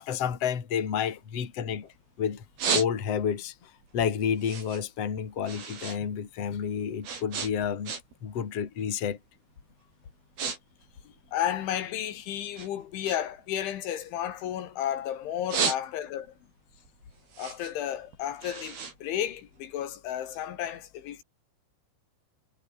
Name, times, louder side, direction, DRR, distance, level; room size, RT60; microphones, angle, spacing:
voice 1, 0.0-2.4 2.7-7.9 8.2-9.2, left 8 dB, 35° left, 3.2 m, -30 dB
sound 1, 0.8-2.0 2.3-3.4 3.8-6.0 6.3-8.3 8.6-9.0 9.6-9.7 10.0-10.6 10.8-12.1 12.5-14.9 15.3-16.3 16.7-19.8, right 6 dB, 55° right, 6.8 m, -34 dB
voice 2, 11.3-16.3 17.4-21.2, left 11 dB, 75° left, 4.4 m, -32 dB
omnidirectional pair, 5.5 m